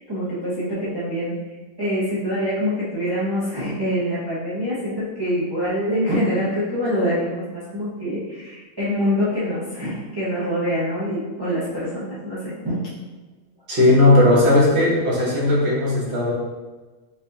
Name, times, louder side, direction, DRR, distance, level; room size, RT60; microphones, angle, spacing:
voice 1, 0.0-1.4 1.8-12.8, equal, 25° right, -10 dB, 0.6 m, -25 dB
voice 2, 13.7-16.3, left 2 dB, 55° right, -5 dB, 1.1 m, -16 dB
4.2 x 2.4 x 2.7 m, 1.2 s
omnidirectional pair, 1.5 m